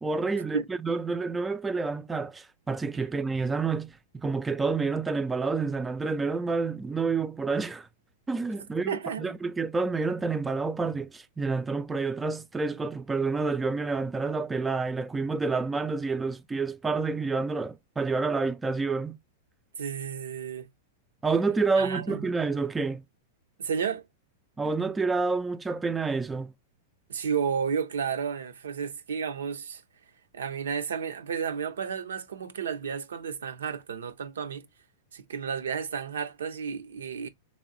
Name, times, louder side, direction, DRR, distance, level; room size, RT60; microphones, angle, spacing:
voice 1, 0.0-7.9 8.3-19.2 21.2-23.0 24.6-26.5, right 4 dB, 10° right, 0.4 m, -29 dB
voice 2, 8.9-9.3 19.8-20.7 21.8-22.3 23.6-24.0 27.1-29.8 30.3-34.7 35.1-37.3, right 7 dB, 85° right, 0.5 m, -32 dB
3.4 x 3.0 x 3.7 m
hypercardioid pair, 115°, 0 cm